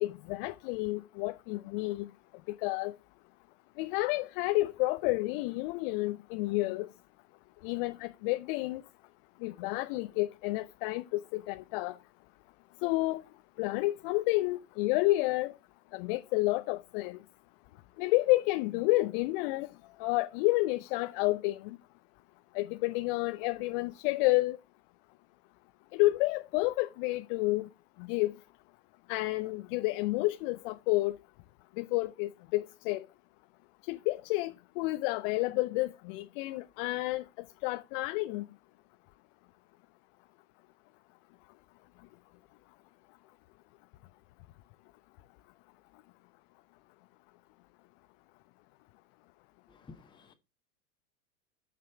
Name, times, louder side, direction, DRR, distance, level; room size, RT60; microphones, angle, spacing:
voice 1, 0.0-2.1 2.6-2.9 3.8-6.9 7.6-8.8 9.4-11.9 12.8-13.2 13.6-15.5 15.9-17.2 18.0-19.7 20.0-21.8 22.5-24.6 25.9-27.6 28.1-28.4 29.1-31.1 31.8-33.1 33.9-37.2 37.6-38.4, left 20 dB, 40° left, 0.6 m, -30 dB
voice 2, 49.7-50.3, left 3 dB, 10° left, 1.3 m, -53 dB
8.2 x 5.9 x 4.5 m
hypercardioid pair, 100°, 44 cm